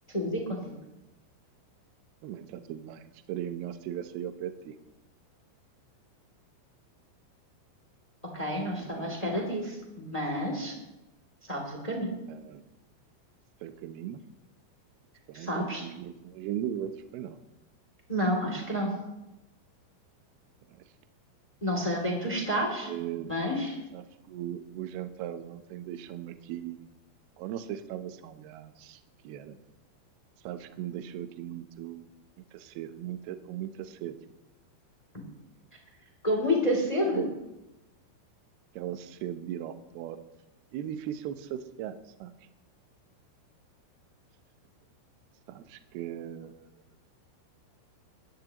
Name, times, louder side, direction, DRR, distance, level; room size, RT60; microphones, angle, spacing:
voice 1, 0.1-0.6 8.3-10.7 11.5-12.1 15.3-15.8 18.1-18.9 21.6-22.9 23.2-23.8 36.2-37.2, equal, 20° left, 0 dB, 1.0 m, -29 dB
voice 2, 2.2-4.8 8.6-9.2 12.3-12.6 13.6-14.2 15.3-17.4 20.7-20.8 22.8-23.4 23.9-26.9 27.4-29.0 29.2-29.6 30.4-32.1 32.5-34.2 37.1-37.3 38.7-40.2 40.7-42.3 45.5-46.7, right 11 dB, 90° right, 9 dB, 2.2 m, -38 dB
21.0 x 16.0 x 3.0 m, 0.98 s
omnidirectional pair, 5.7 m